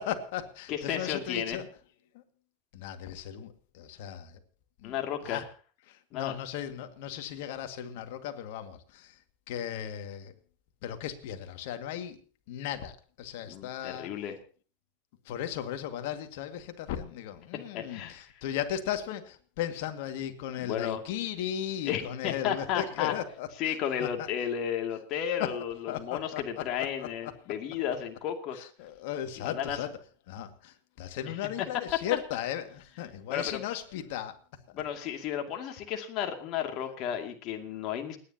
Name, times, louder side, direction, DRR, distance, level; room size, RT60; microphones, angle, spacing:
voice 1, 0.0-1.7 2.1-2.2 2.7-4.4 4.8-4.9 5.2-5.4 5.9-9.2 9.5-10.3 10.8-12.2 12.5-14.1 15.3-24.3 25.4-25.5 25.9-27.3 28.5-29.9 30.3-34.4 34.7-34.8, left 10 dB, 65° left, 7 dB, 2.0 m, -36 dB
voice 2, 0.7-1.6 4.8-5.4 6.1-6.3 13.5-14.4 17.5-18.2 20.6-21.0 21.9-23.1 23.6-28.6 29.4-29.8 33.3-33.6 34.7-38.2, left 9 dB, 50° left, 4 dB, 2.4 m, -33 dB
29.0 x 10.0 x 2.9 m, 0.39 s
hypercardioid pair, 110°, 0 cm